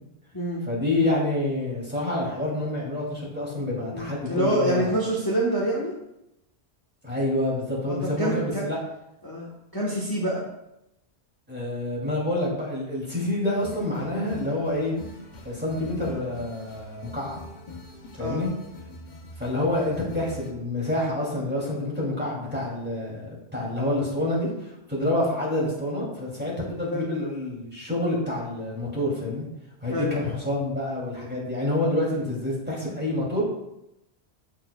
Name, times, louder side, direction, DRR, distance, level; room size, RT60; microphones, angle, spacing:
voice 1, 0.7-5.0 7.0-8.8 11.5-14.9 15.4-17.4 18.2-18.5 19.4-29.5 29.8-33.4, left 1 dB, 10° right, -6 dB, 2.7 m, -27 dB
voice 2, 3.9-5.9 7.9-8.6 9.2-9.5 9.7-10.4 18.2-18.4 26.9-27.1 29.9-30.1, right 1 dB, 20° left, -5 dB, 1.2 m, -26 dB
sound 1, 13.5-20.5, left 1 dB, 45° left, 0.9 m, -43 dB
14.0 x 4.7 x 2.3 m, 0.86 s
omnidirectional pair, 1.1 m